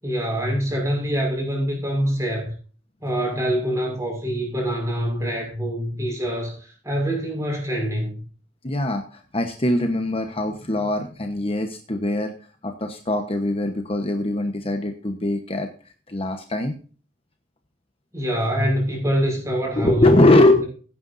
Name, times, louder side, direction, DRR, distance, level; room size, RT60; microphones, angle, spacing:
voice 1, 0.0-2.5 3.0-8.2 18.1-20.1 20.6-20.7, equal, 15° right, 1 dB, 5.8 m, -25 dB
voice 2, 8.6-16.7 19.8-20.6, left 1 dB, 30° left, 5 dB, 1.0 m, -22 dB
16.5 x 9.5 x 2.6 m, 0.39 s
head